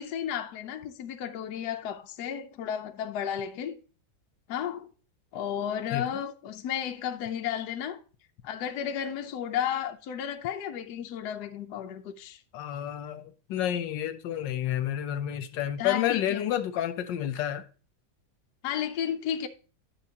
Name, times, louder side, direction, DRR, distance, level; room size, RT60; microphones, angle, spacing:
voice 1, 0.0-3.8 4.5-4.9 5.3-8.0 8.4-12.4 15.8-16.4 18.6-19.5, left 9 dB, 70° left, 1.2 m, -33 dB
voice 2, 12.5-17.6, left 11 dB, 90° left, 1.4 m, -30 dB
10.5 x 5.7 x 2.8 m
omnidirectional pair, 1.9 m